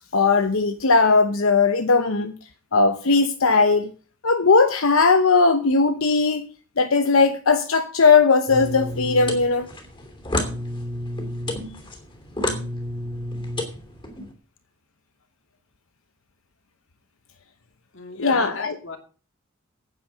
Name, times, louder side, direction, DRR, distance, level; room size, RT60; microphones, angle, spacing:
voice 1, 0.1-2.4 2.7-3.9 4.2-6.5 6.8-9.7 18.2-18.7, left 4 dB, 90° left, 0.9 m, -18 dB
sound 1, 8.5-14.3, left 1 dB, 25° left, 3.0 m, -30 dB
voice 2, 17.9-19.0, left 4 dB, 65° left, 2.6 m, -36 dB
9.6 x 9.0 x 6.4 m
head